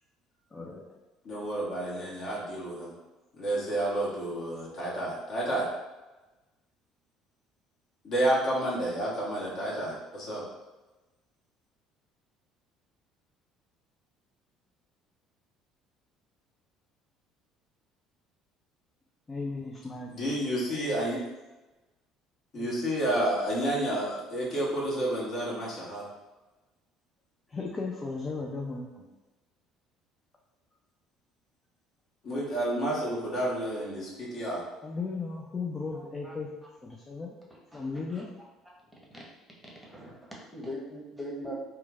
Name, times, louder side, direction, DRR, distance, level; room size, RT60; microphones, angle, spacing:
voice 1, 0.5-0.9 3.5-3.6 19.3-20.3 22.5-22.7 27.5-29.1 34.8-36.5 36.8-37.3 37.7-38.3, left 4 dB, 30° left, -1 dB, 0.4 m, -36 dB
voice 2, 1.2-2.9 3.3-5.7 8.0-10.4 20.1-21.2 22.5-26.0 32.2-34.6, right 1 dB, 50° left, -5 dB, 1.0 m, -30 dB
voice 3, 35.9-36.3 37.7-38.2 39.1-39.2 39.8-41.5, equal, ahead, -4 dB, 0.8 m, -41 dB
3.0 x 2.1 x 2.3 m, 1.1 s
hypercardioid pair, 60°, 0 cm